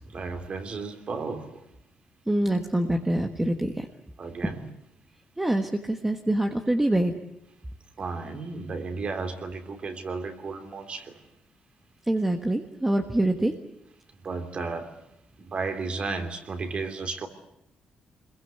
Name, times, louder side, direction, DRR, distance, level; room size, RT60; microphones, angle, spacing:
voice 1, 0.0-1.6 4.2-4.6 8.0-11.2 14.2-15.0 15.4-17.3, right 4 dB, 45° right, 5 dB, 3.2 m, -34 dB
voice 2, 2.3-3.9 5.4-7.1 12.1-13.5, right 1 dB, 10° right, 4 dB, 1.4 m, -25 dB
26.5 x 22.0 x 8.1 m, 0.86 s
cardioid pair, 135°, 3 cm